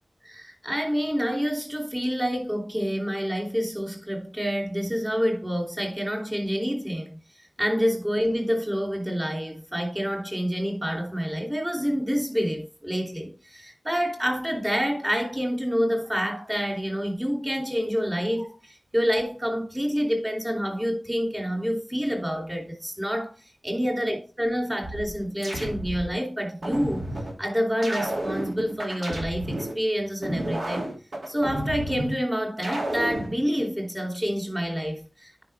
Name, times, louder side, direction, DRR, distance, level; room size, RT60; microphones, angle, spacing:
voice 1, 0.2-7.2 7.6-23.3 23.6-27.1 27.4-30.8 31.3-35.4, equal, 10° right, 2.8 m, -27 dB
sound 1, 24.8-26.1 26.6-27.3 27.8-29.7 30.2-32.1 32.6-33.3, right 1 dB, 70° right, 2.5 m, -31 dB
9.7 x 5.1 x 3.4 m
wide cardioid pair, 85°, 0 cm